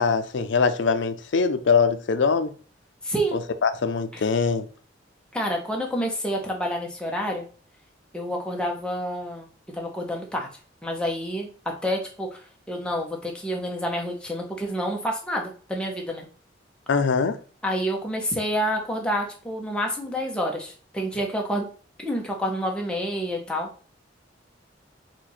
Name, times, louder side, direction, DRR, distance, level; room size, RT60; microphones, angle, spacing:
voice 1, 0.0-2.5 3.3-4.7 16.9-17.4, left 5 dB, 70° left, 0.5 m, -22 dB
voice 2, 3.0-3.5 4.1-4.2 5.3-7.4 8.1-9.5 9.7-10.5 10.8-11.5 11.8-16.3 17.6-21.7 22.0-23.7, equal, 5° left, 0.8 m, -28 dB
4.4 x 2.5 x 4.1 m
head